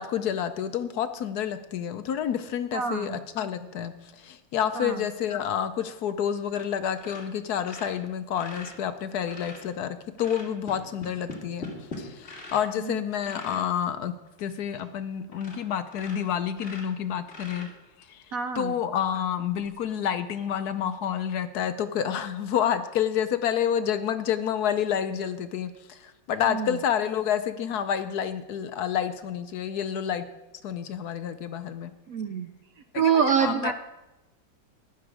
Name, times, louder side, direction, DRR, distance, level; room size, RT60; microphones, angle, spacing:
voice 1, 0.0-11.7 12.0-14.1 14.4-17.7 18.1-18.2 18.5-30.3 30.6-31.9 32.9-33.7, left 9 dB, 65° left, 10 dB, 1.1 m, -29 dB
voice 2, 2.7-3.2 4.7-5.0 12.8-13.0 18.3-18.8 26.5-26.7 32.1-32.5 32.9-33.7, right 7 dB, 70° right, 8 dB, 0.8 m, -26 dB
sound 1, 6.5-6.7 6.9-9.7 10.2-12.7 13.2-13.7 14.3-14.4 14.8-14.9 15.3-15.6 15.9-18.0 19.6-19.7, left 2 dB, 35° left, 2.8 m, -42 dB
14.5 x 10.5 x 4.8 m, 1.0 s
omnidirectional pair, 2.0 m